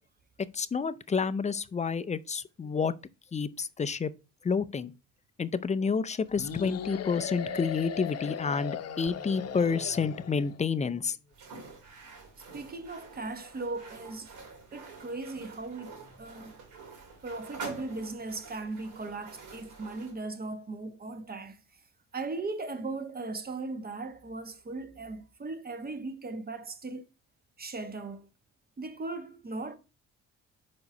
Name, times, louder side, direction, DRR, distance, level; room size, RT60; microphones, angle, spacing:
voice 1, 0.5-2.9 3.3-4.1 4.4-4.9 5.4-11.2, left 5 dB, 25° left, 0.5 m, -29 dB
sound 1, 6.4-10.5, left 7 dB, 55° left, 0.8 m, -37 dB
sound 2, 11.3-20.2, right 4 dB, 80° right, 2.9 m, -47 dB
voice 2, 12.5-14.3 14.7-16.5 17.2-21.6 22.1-27.0 27.6-28.3 28.8-29.8, right 3 dB, 30° right, 1.1 m, -38 dB
5.2 x 4.8 x 5.3 m
cardioid pair, 90°, 30 cm